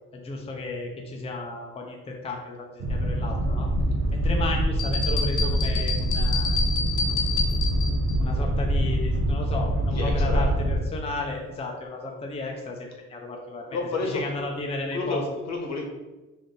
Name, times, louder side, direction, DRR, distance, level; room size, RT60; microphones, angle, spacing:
voice 1, 0.1-3.7 4.1-6.5 8.2-15.2, left 2 dB, 20° left, 1 dB, 0.5 m, -34 dB
Boat Water vehicle, 2.8-10.8, equal, 55° right, 0.6 m, -25 dB
sound 1, 4.8-8.1, left 5 dB, 85° left, 0.6 m, -29 dB
voice 2, 9.9-10.5 13.7-14.2 14.9-15.8, left 3 dB, 60° left, 1 dB, 0.9 m, -30 dB
3.5 x 2.6 x 3.7 m, 1.1 s
cardioid pair, 90°, 30 cm